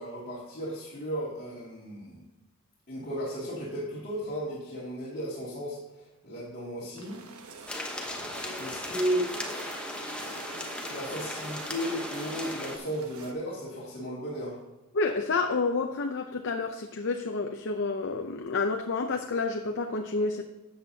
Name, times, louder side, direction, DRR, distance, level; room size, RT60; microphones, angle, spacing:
voice 1, 0.0-2.2 2.9-7.2 8.6-9.3 10.9-14.6, equal, 45° left, -7 dB, 2.4 m, -34 dB
sound 1, 7.0-13.3, right 4 dB, 85° right, 1.0 m, -46 dB
sound 2, 7.7-12.8, left 1 dB, 5° left, 1.0 m, -37 dB
voice 2, 14.9-20.4, left 3 dB, 60° left, 3 dB, 0.6 m, -29 dB
13.0 x 8.0 x 2.8 m, 1.0 s
head